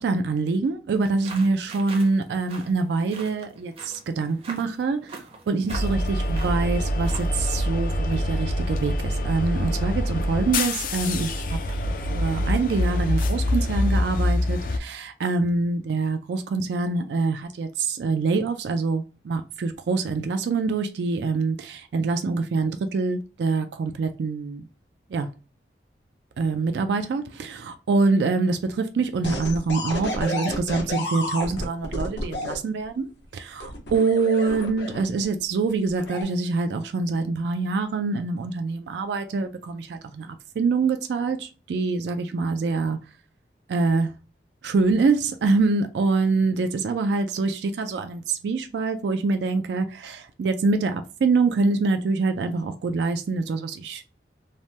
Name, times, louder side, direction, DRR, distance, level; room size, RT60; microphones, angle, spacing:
voice 1, 0.0-24.6 25.1-25.3 26.4-43.0 43.7-44.1 44.6-54.0, right 4 dB, 75° right, 0.3 m, -25 dB
sound 1, 1.0-7.4, right 3 dB, 30° right, 0.6 m, -43 dB
sound 2, 5.7-14.8, left 1 dB, 50° left, 0.4 m, -25 dB
sound 3, 29.2-32.6 33.6-35.2 35.9-36.2, left 1 dB, 85° left, 0.9 m, -31 dB
3.2 x 2.1 x 2.7 m
head